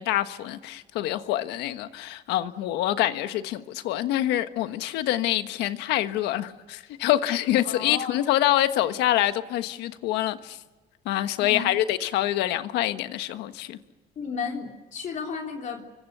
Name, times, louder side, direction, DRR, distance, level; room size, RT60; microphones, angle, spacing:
voice 1, 0.0-10.6 11.0-13.8, left 13 dB, 90° left, 1.4 m, -26 dB
voice 2, 7.6-8.2 11.4-11.7 14.2-15.8, left 5 dB, 50° left, 3.5 m, -33 dB
29.5 x 25.0 x 6.8 m
cardioid pair, 110°, 17 cm